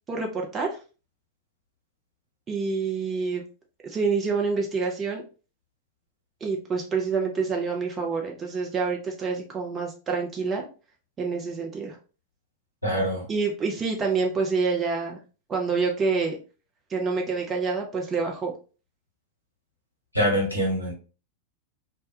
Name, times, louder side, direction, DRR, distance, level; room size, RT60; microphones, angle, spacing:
voice 1, 0.1-0.7 2.5-3.4 3.8-5.2 6.4-10.7 11.2-12.0 13.3-15.2 15.5-16.4 16.9-18.5, right 4 dB, 25° right, 0.5 m, -27 dB
voice 2, 12.8-13.2 20.1-20.9, equal, 90° right, 1.0 m, -24 dB
2.2 x 2.1 x 2.7 m
figure-of-eight pair, 90°, 0 cm